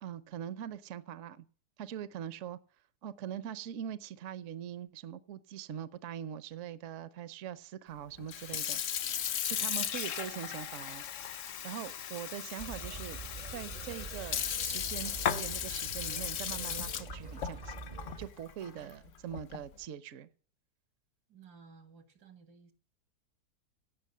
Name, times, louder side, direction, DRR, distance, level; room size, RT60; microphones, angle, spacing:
voice 1, 0.0-1.4 1.8-2.6 3.0-8.8 9.4-11.0 11.6-13.2 13.5-17.7 18.2-20.3, right 10 dB, 60° right, 1.0 m, -42 dB
Sink (filling or washing) / Fill (with liquid), 8.2-19.7, left 9 dB, 60° left, 1.0 m, -37 dB
sound 1, 12.6-18.3, right 4 dB, 35° right, 0.7 m, -45 dB
voice 2, 18.6-19.4 21.3-22.7, right 5 dB, 85° right, 2.4 m, -57 dB
17.0 x 6.1 x 7.2 m
omnidirectional pair, 1.7 m